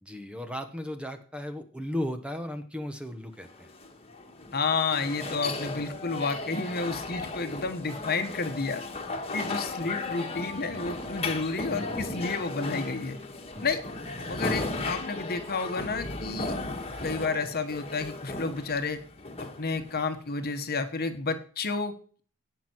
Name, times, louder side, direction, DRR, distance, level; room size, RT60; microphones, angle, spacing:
voice 1, 0.0-3.7 9.4-9.6 13.5-13.7, left 1 dB, 5° right, 7 dB, 1.0 m, -36 dB
sound 1, 3.4-20.5, left 3 dB, 25° left, 1.6 m, -36 dB
voice 2, 4.5-8.8 9.3-13.2 13.6-13.8 14.3-16.6 17.0-19.0 19.6-21.9, left 4 dB, 45° left, 8 dB, 1.3 m, -31 dB
17.5 x 6.0 x 4.6 m, 0.42 s
head